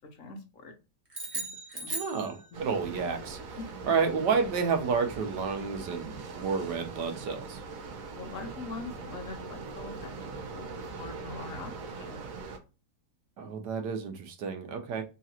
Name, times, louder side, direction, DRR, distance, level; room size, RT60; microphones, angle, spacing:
voice 1, 0.1-0.7 1.3-1.9 2.5-2.6 3.5-3.9 8.1-12.2, left 3 dB, 55° left, 4 dB, 1.1 m, -43 dB
sound 1, 1.1-2.9, right 3 dB, 25° right, 1.0 m, -37 dB
voice 2, 1.9-7.6 13.4-15.0, right 5 dB, 85° right, 5 dB, 1.5 m, -30 dB
sound 2, 2.5-12.6, right 4 dB, 60° right, 1.1 m, -41 dB
3.8 x 2.4 x 4.2 m, 0.30 s
omnidirectional pair, 1.8 m